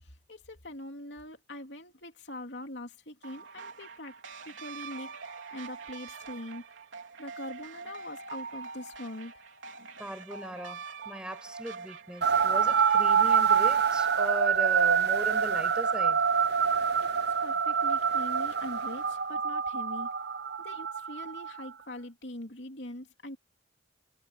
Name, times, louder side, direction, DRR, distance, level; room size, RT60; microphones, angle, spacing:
voice 1, 0.0-4.1 4.4-6.6 7.2-9.3 17.0-20.1 20.6-23.4, left 1 dB, 65° left, 3.2 m, -43 dB
sound 1, 3.2-14.0, right 4 dB, 80° right, 3.6 m, -44 dB
voice 2, 10.0-16.2, equal, 5° right, 5.8 m, -39 dB
sound 2, 12.2-21.7, right 6 dB, 55° right, 0.8 m, -26 dB
head